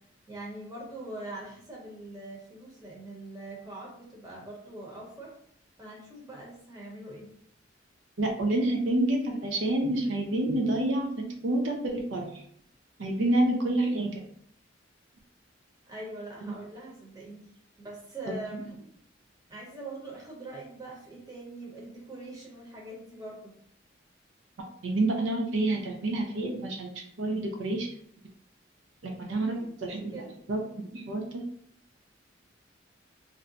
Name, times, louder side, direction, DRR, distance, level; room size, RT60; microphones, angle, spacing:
voice 1, 0.3-5.3 5.8-7.3 15.9-17.5 17.8-18.8 19.5-23.5 29.4-29.6 30.1-30.3, right 2 dB, 20° right, -3 dB, 0.9 m, -42 dB
voice 2, 8.2-12.4 13.0-14.2 24.8-26.9 27.2-27.9 29.0-29.6 29.8-30.2 30.5-31.3, right 1 dB, 75° right, 1 dB, 0.5 m, -28 dB
2.6 x 2.2 x 3.9 m, 0.66 s
head